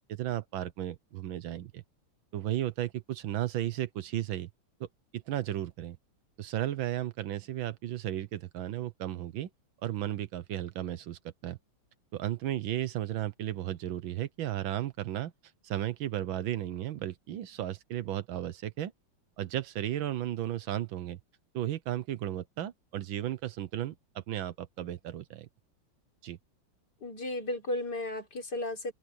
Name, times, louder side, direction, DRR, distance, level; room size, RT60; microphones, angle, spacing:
voice 1, 0.1-1.8 2.3-4.5 4.8-4.9 5.1-6.0 6.4-9.5 9.8-11.6 12.1-15.3 15.6-18.9 19.4-21.2 21.5-25.5 26.2-26.4, right 12 dB, 75° right, 1.6 m, -34 dB
voice 2, 27.0-28.9, left 1 dB, 50° left, 4.3 m, -34 dB
open air
omnidirectional pair, 2.3 m